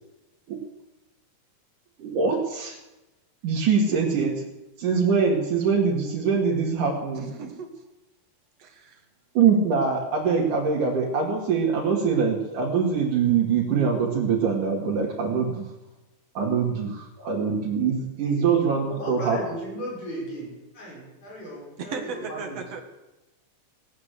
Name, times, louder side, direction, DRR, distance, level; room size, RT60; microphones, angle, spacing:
voice 1, 2.0-2.8 3.4-4.4 4.8-7.3 9.3-15.7 16.3-19.4, right 5 dB, 75° right, -4 dB, 3.4 m, -23 dB
voice 2, 7.2-7.7 8.6-9.0 21.8-22.8, right 5 dB, 55° right, 4 dB, 2.7 m, -36 dB
voice 3, 18.8-22.6, equal, 70° left, -5 dB, 7.5 m, -37 dB
18.0 x 8.5 x 8.2 m, 1.0 s
omnidirectional pair, 3.6 m